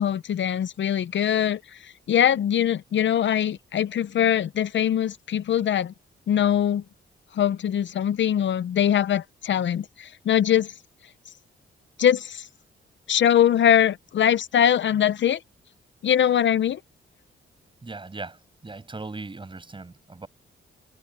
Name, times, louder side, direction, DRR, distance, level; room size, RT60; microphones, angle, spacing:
voice 1, 0.0-5.9 6.3-6.8 7.3-10.7 12.0-12.5 13.1-15.4 16.0-16.8, left 9 dB, 65° left, 0.7 m, -22 dB
voice 2, 17.8-20.3, right 3 dB, 25° right, 6.8 m, -38 dB
wide cardioid pair, 125°, 21 cm